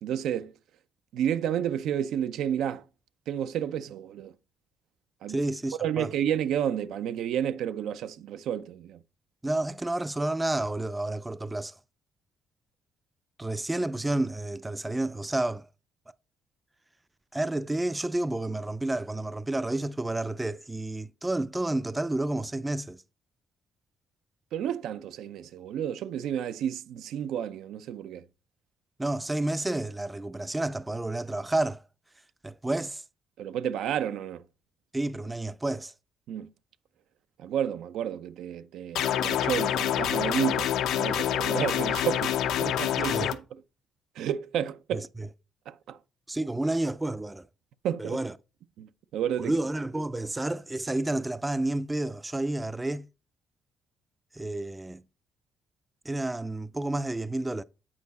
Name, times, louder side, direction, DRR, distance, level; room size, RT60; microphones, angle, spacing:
voice 1, 0.0-0.5 1.1-2.8 3.3-4.3 5.2-5.4 5.8-9.0 24.5-28.2 33.4-34.4 36.3-36.5 37.4-43.3 44.2-45.1 45.7-46.0 47.8-48.2 48.8-49.5, right 9 dB, 80° right, 0.5 m, -31 dB
voice 2, 5.3-6.1 9.4-11.7 13.4-15.7 17.3-23.0 29.0-31.8 32.4-33.0 34.9-35.9 43.1-43.3 44.9-45.3 46.3-47.5 48.0-48.3 49.4-53.1 54.3-55.0 56.1-57.6, right 2 dB, 15° right, 0.4 m, -30 dB
sound 1, 39.0-43.3, left 10 dB, 85° left, 0.7 m, -27 dB
8.7 x 4.7 x 4.1 m
cardioid pair, 90°, 0 cm